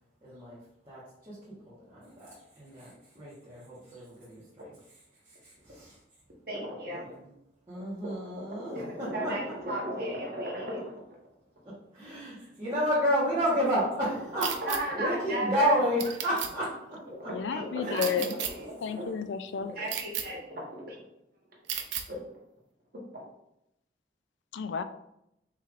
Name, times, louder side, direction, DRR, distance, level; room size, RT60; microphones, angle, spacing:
voice 1, 0.2-0.6 0.8-1.4 1.7-4.8 5.3-5.9 6.9-7.3 7.7-9.3 11.9-16.7 17.2-17.3 17.8-18.2, equal, 25° right, -10 dB, 1.4 m, -31 dB
voice 2, 6.5-7.1 8.0-8.1 8.5-11.0 14.7-15.8 17.5-19.0 19.7-21.0 22.1-22.2 23.1-23.2, right 1 dB, 55° right, -3 dB, 1.3 m, -35 dB
sound 1, 14.4-14.8 16.0-16.5 18.0-18.5 19.9-20.2 21.7-22.0, right 9 dB, 90° right, 0.5 m, -33 dB
voice 3, 17.3-18.4 18.8-19.7 24.5-24.8, left 6 dB, 80° left, 10 dB, 0.4 m, -32 dB
5.5 x 3.2 x 2.5 m, 0.79 s
head